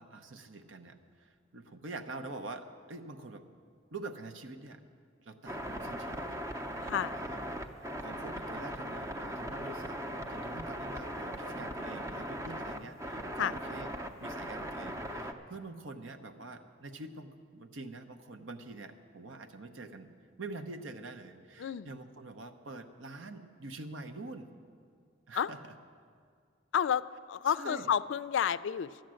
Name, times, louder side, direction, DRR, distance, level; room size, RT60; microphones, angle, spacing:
voice 1, 0.0-3.5 3.9-4.8 5.2-6.4 7.1-7.4 7.7-10.0 10.3-13.9 14.2-20.1 20.4-24.5 25.3-25.7 27.5-27.9, right 3 dB, 80° right, 8 dB, 0.8 m, -45 dB
sound 1, 5.5-15.3, equal, 15° right, 0.6 m, -39 dB
voice 2, 6.8-7.1 13.4-13.5 21.6-21.9 25.4-25.5 26.7-27.0 27.3-29.0, left 8 dB, 70° left, 17 dB, 0.3 m, -30 dB
13.0 x 9.1 x 7.6 m, 2.1 s
head